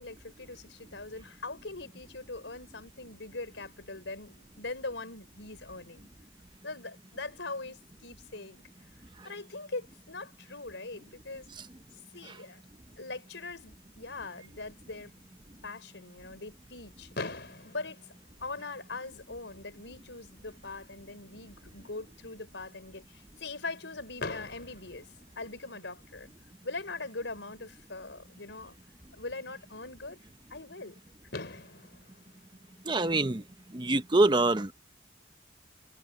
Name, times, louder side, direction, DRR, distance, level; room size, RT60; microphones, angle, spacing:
voice 1, 0.0-6.1 6.6-8.6 9.2-11.5 12.1-12.6 13.0-15.1 15.6-17.1 17.6-18.1 18.4-25.1 25.3-26.3 26.6-28.8 29.1-30.2 30.5-31.0 31.4-31.6, left 3 dB, 90° left, 5.0 m, -41 dB
Fireworks, 17.1-19.2 20.0-20.1 20.3-20.5 20.8-20.9 24.2-26.0 27.7-27.8 30.8-30.9 31.3-33.6, left 3 dB, 70° left, 4.1 m, -43 dB
voice 2, 32.8-33.4 33.7-34.7, right 2 dB, 25° right, 0.8 m, -25 dB
head